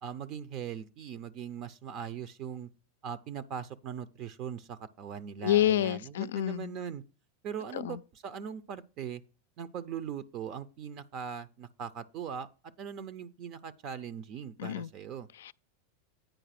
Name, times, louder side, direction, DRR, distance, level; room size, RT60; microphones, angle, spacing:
voice 1, 0.0-2.7 3.0-7.0 7.4-9.2 9.6-12.5 12.8-15.3, right 8 dB, 45° right, 0.6 m, -40 dB
voice 2, 5.4-6.7 7.7-8.0 14.6-14.9 15.5-15.6, left 12 dB, 80° left, 0.3 m, -28 dB
9.1 x 4.6 x 5.9 m
hypercardioid pair, 120°, 0 cm